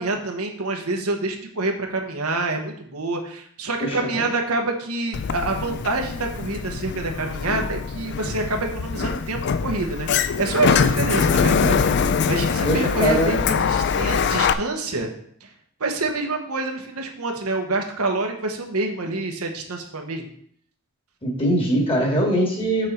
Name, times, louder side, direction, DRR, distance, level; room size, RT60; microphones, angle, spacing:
voice 1, 0.0-15.1 15.4-15.5 15.8-20.3, right 2 dB, 85° right, 3 dB, 1.2 m, -27 dB
Sliding door, 5.1-14.5, left 6 dB, 50° left, 0.4 m, -23 dB
voice 2, 12.6-13.3 21.2-22.9, equal, 25° left, 0 dB, 1.9 m, -21 dB
6.7 x 6.2 x 4.4 m, 0.64 s
head